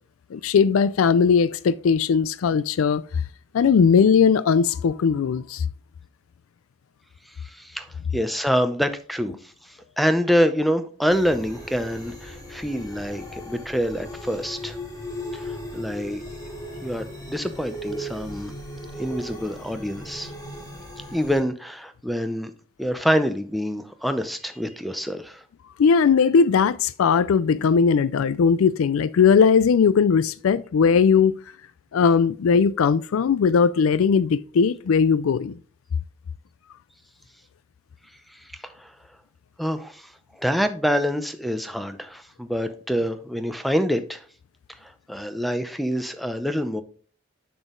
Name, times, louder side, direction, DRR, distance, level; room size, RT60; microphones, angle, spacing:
voice 1, 0.3-3.0 3.5-5.7 25.8-31.4 31.9-35.5, left 6 dB, 85° left, 0.4 m, -19 dB
voice 2, 7.4-7.9 8.1-14.8 15.3-16.2 16.8-18.5 19.0-20.3 21.1-22.5 22.8-25.4 38.3-38.9 39.6-44.2 44.8-46.8, equal, ahead, 0.6 m, -26 dB
sound 1, 11.1-21.4, equal, 20° left, 1.8 m, -37 dB
7.1 x 6.1 x 3.7 m
head